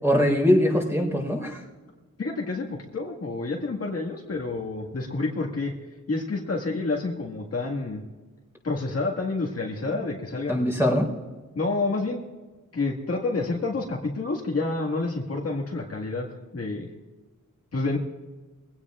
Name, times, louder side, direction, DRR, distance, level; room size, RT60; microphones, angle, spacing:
voice 1, 0.0-1.6 9.9-10.1 10.5-11.1, equal, 10° right, 0 dB, 4.5 m, -22 dB
voice 2, 2.2-5.7 6.1-8.0 8.6-10.6 11.6-12.2 12.7-16.3 16.5-16.9 17.7-18.0, left 3 dB, 50° left, -1 dB, 1.8 m, -28 dB
22.5 x 17.0 x 2.4 m, 1.3 s
wide cardioid pair, 115°, 31 cm